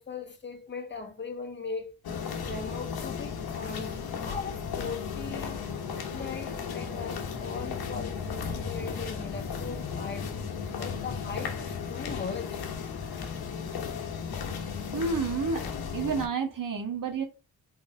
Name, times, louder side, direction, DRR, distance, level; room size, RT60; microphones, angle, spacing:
voice 1, 0.0-2.0 2.5-5.6 6.1-10.3 10.8-13.5, left 5 dB, 30° left, 1.8 m, -39 dB
sound 1, 2.0-16.3, left 6 dB, 80° left, 1.4 m, -35 dB
voice 2, 14.9-15.6 15.9-17.2, right 5 dB, 60° right, 1.7 m, -29 dB
4.7 x 4.2 x 4.8 m
cardioid pair, 65°, 37 cm